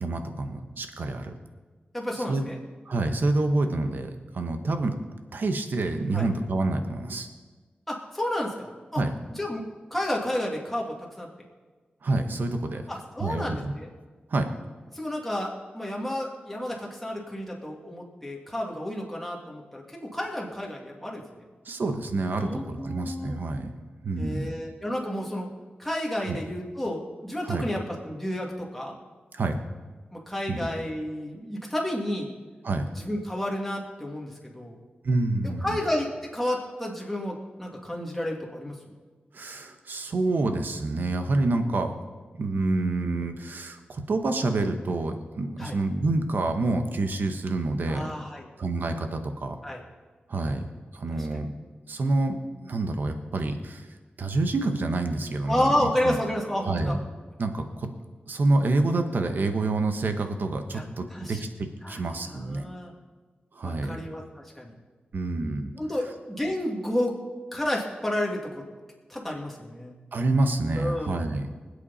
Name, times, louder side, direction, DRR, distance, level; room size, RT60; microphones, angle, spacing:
voice 1, 0.0-1.3 2.2-2.5 2.9-4.9 5.3-7.3 8.9-9.1 12.0-12.8 13.2-13.7 14.3-14.5 21.6-23.7 24.0-24.5 26.3-26.4 27.4-27.6 29.3-29.6 30.5-30.7 32.6-32.9 35.0-35.8 39.3-42.0 42.4-48.1 48.6-49.6 50.3-50.6 50.9-51.5 51.9-53.9 54.2-56.2 56.6-57.0 57.4-57.9 58.3-62.7 63.5-64.0 65.1-65.7 70.1-71.5, right 2 dB, 65° right, 6 dB, 1.3 m, -27 dB
voice 2, 1.9-2.6 6.1-6.3 7.9-9.0 9.4-11.3 12.9-13.9 14.9-21.4 22.4-23.4 24.2-25.5 25.8-29.0 30.1-32.3 33.0-34.8 35.4-38.7 45.6-45.8 47.9-48.5 49.6-49.8 51.2-51.3 55.5-56.9 60.7-60.8 61.1-61.4 61.8-62.9 63.6-64.8 65.8-67.2 67.5-68.6 69.1-70.0 70.8-71.3, left 1 dB, 5° left, -2 dB, 2.6 m, -31 dB
25.5 x 8.5 x 4.2 m, 1.4 s
wide cardioid pair, 130°, 3 cm